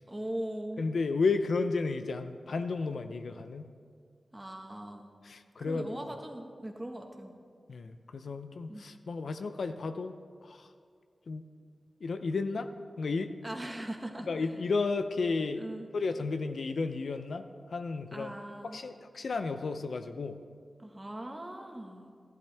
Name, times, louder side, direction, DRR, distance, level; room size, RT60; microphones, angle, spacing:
voice 1, 0.1-0.8 4.3-5.1 5.6-7.3 8.7-8.8 13.4-14.3 15.6-15.9 18.1-18.8 20.8-22.1, right 1 dB, 20° right, 3 dB, 1.4 m, -40 dB
voice 2, 0.8-3.7 5.2-5.9 7.7-10.2 10.4-10.7 11.3-11.4 12.0-12.7 13.0-13.3 14.3-15.6 15.9-18.3 18.7-20.4, left 4 dB, 80° left, 9 dB, 0.5 m, -32 dB
13.5 x 11.5 x 3.4 m, 2.1 s
cardioid pair, 60°, 0 cm